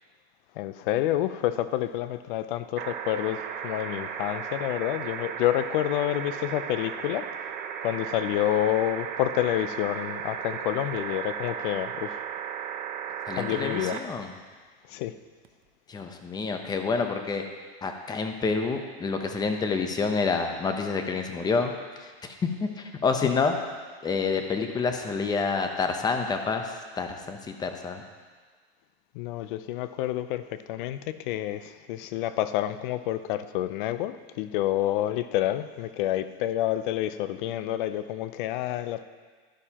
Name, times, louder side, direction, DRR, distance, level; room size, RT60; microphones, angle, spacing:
voice 1, 0.6-7.3 7.8-12.2 13.3-14.0 14.9-15.1 29.1-39.0, left 13 dB, 55° left, 13 dB, 0.6 m, -28 dB
sound 1, 2.8-14.0 15.4-15.5, right 8 dB, 30° right, 0.7 m, -35 dB
voice 2, 13.3-14.3 15.9-17.4 17.8-21.7 22.0-23.6 24.0-28.0, left 4 dB, 15° left, 5 dB, 0.7 m, -28 dB
12.0 x 11.0 x 2.9 m, 1.5 s
supercardioid pair, 145°, 31 cm